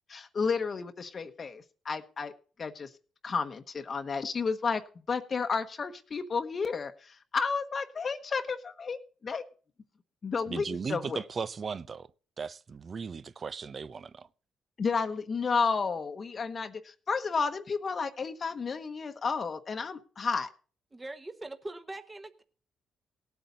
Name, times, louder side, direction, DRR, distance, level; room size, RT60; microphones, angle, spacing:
voice 1, 0.1-2.3 2.6-2.9 3.2-4.8 5.1-9.4 10.2-11.2 14.8-20.5, left 5 dB, 40° left, 1.0 m, -32 dB
voice 2, 10.5-12.1 12.4-14.3, right 5 dB, 40° right, 0.6 m, -37 dB
voice 3, 20.9-22.4, right 2 dB, 20° right, 1.2 m, -42 dB
18.0 x 8.3 x 4.0 m
cardioid pair, 90°, 0 cm